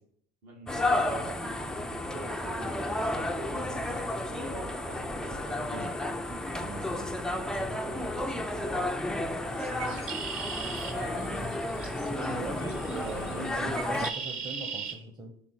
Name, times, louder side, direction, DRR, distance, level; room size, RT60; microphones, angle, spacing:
voice 1, 0.4-10.0 10.8-12.1, right 3 dB, 65° right, -2 dB, 2.4 m, -46 dB
sound 1, 0.7-14.1, left 1 dB, ahead, 0.3 m, -32 dB
Bird, 9.5-14.9, right 6 dB, 45° right, 1.4 m, -40 dB
voice 2, 12.1-15.3, right 3 dB, 15° right, 3 dB, 0.8 m, -40 dB
5.3 x 3.7 x 4.7 m, 0.64 s
supercardioid pair, 95°, 29 cm